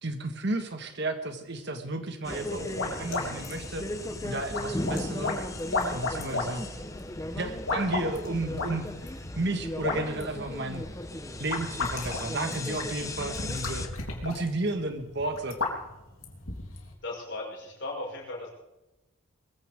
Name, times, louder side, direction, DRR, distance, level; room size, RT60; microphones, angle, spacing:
voice 1, 0.0-3.9 4.2-5.4 5.9-6.6 7.4-8.9 9.4-10.9 11.4-13.8 14.2-15.6, right 2 dB, 50° right, 6 dB, 1.7 m, -32 dB
sound 1, 2.2-13.9, left 1 dB, 15° left, 1.0 m, -36 dB
sound 2, 2.4-16.9, left 3 dB, 85° left, 3.4 m, -35 dB
voice 2, 17.0-18.5, left 2 dB, 55° left, -2 dB, 5.7 m, -37 dB
22.0 x 15.5 x 3.7 m, 0.99 s
head